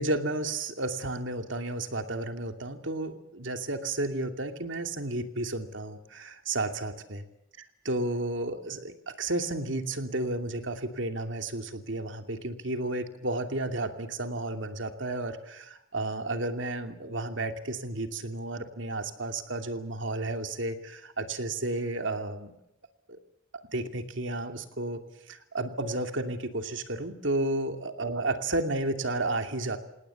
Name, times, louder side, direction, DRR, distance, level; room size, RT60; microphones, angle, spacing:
voice 1, 0.0-7.2 7.8-22.6 23.1-23.2 23.7-25.0 25.3-29.8, right 2 dB, 70° right, 6 dB, 2.7 m, -32 dB
28.0 x 18.5 x 7.2 m, 0.81 s
head